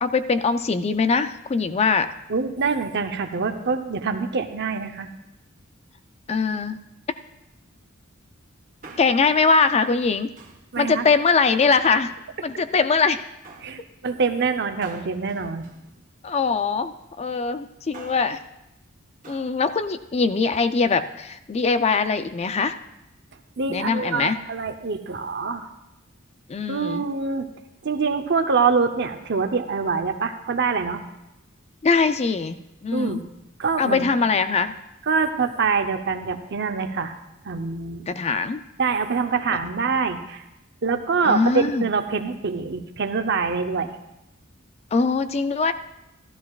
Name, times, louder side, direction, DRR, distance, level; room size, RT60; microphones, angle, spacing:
voice 1, 0.0-2.1 6.3-6.8 9.0-10.3 10.8-12.1 12.4-13.3 16.2-18.4 19.3-22.8 23.7-24.4 26.5-27.0 31.8-33.2 33.8-34.7 38.1-38.6 39.5-39.6 41.2-41.9 44.9-45.7, left 4 dB, 30° left, 11 dB, 0.4 m, -22 dB
voice 2, 2.3-5.1 10.7-11.1 13.6-15.7 23.6-25.7 26.7-27.5 27.8-31.0 32.9-33.2 33.6-34.1 35.1-37.1 37.4-38.1 38.8-40.4 40.8-43.9, right 5 dB, 55° right, 7 dB, 0.8 m, -25 dB
Male speech man speaking, 8.6-9.4 10.4-10.7 11.5-12.3 13.4-13.8 14.8-16.5 17.7-18.4 19.2-19.6 19.8-19.9, right 3 dB, 40° right, 1.4 m, -47 dB
15.0 x 12.5 x 2.4 m, 0.90 s
head